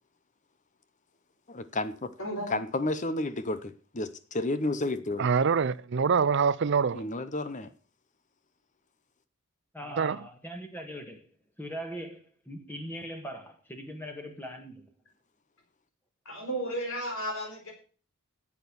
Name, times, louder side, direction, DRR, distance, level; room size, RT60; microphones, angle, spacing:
voice 1, 1.5-2.1 2.5-5.3 6.9-7.7, left 2 dB, 35° left, 0.9 m, -31 dB
voice 2, 2.2-2.6 16.3-17.7, right 1 dB, 60° left, 4.2 m, -33 dB
voice 3, 5.2-7.0 10.0-10.2, right 6 dB, 50° right, 0.5 m, -25 dB
voice 4, 9.7-11.3 11.6-14.9, equal, 10° left, 1.7 m, -40 dB
11.0 x 8.3 x 7.0 m
head